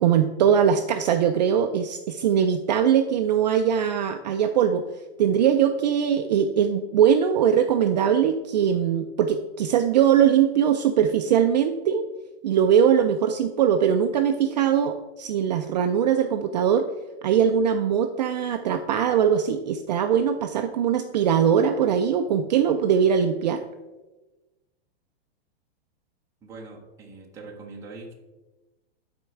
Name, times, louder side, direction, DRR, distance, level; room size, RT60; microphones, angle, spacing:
voice 1, 0.0-4.8 5.2-12.0 12.4-16.9 17.2-23.6, right 8 dB, 40° right, 6 dB, 0.4 m, -21 dB
voice 2, 26.4-28.1, right 3 dB, 10° right, -1 dB, 0.8 m, -42 dB
11.5 x 4.3 x 4.6 m, 1.1 s
supercardioid pair, 170°, 32 cm